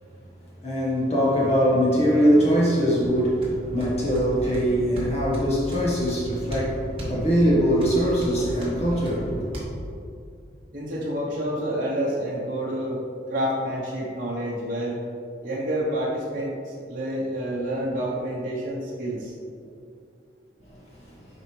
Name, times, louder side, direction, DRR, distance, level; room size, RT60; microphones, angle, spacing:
voice 1, 0.6-9.5, equal, 35° left, -5 dB, 1.4 m, -22 dB
sound 1, 3.0-9.6, equal, 30° right, 1.5 m, -35 dB
voice 2, 10.7-13.0 13.3-15.0 15.4-19.3, equal, 45° right, -6 dB, 1.0 m, -28 dB
7.8 x 5.1 x 3.3 m, 2.5 s
head